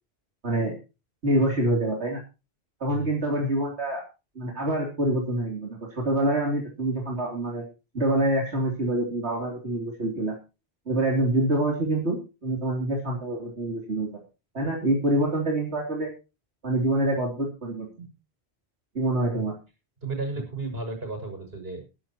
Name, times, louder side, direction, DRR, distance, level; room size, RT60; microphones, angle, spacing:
voice 1, 0.4-0.7 1.2-2.2 2.8-4.0 4.4-7.6 7.9-10.4 10.9-12.2 12.4-14.2 14.5-16.1 16.6-18.1 19.0-19.6, right 1 dB, 85° right, -1 dB, 3.5 m, -26 dB
voice 2, 20.0-21.9, right 3 dB, 65° right, 4 dB, 6.6 m, -33 dB
21.0 x 11.5 x 3.0 m, 0.30 s
omnidirectional pair, 1.1 m